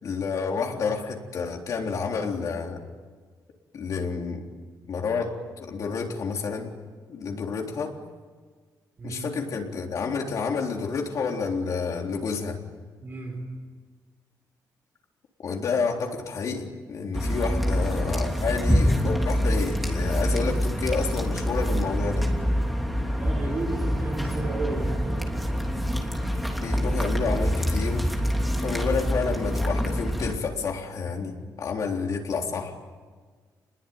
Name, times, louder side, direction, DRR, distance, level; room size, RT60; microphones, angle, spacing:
voice 1, 0.0-2.8 3.7-4.5 4.8-6.7 7.1-8.0 9.0-12.6 15.4-22.3 26.6-28.1 28.6-32.7, left 5 dB, 50° left, 2 dB, 3.8 m, -29 dB
voice 2, 9.0-9.3 13.0-13.5 23.1-25.4, right 3 dB, 30° right, 2 dB, 4.5 m, -33 dB
sound 1, 17.1-30.3, equal, ahead, 3.0 m, -26 dB
30.0 x 21.5 x 9.4 m, 1.5 s
wide cardioid pair, 170°, 7 cm